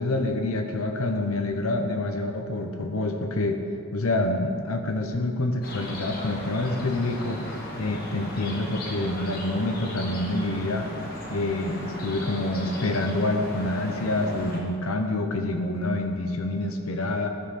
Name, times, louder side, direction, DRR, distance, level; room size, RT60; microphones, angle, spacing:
voice 1, 0.0-3.6 3.9-7.4 7.8-10.9 11.3-17.3, left 2 dB, 80° left, 4 dB, 0.9 m, -27 dB
sound 1, 5.6-14.6, left 1 dB, 45° left, 1.6 m, -37 dB
13.0 x 5.6 x 4.3 m, 2.2 s
head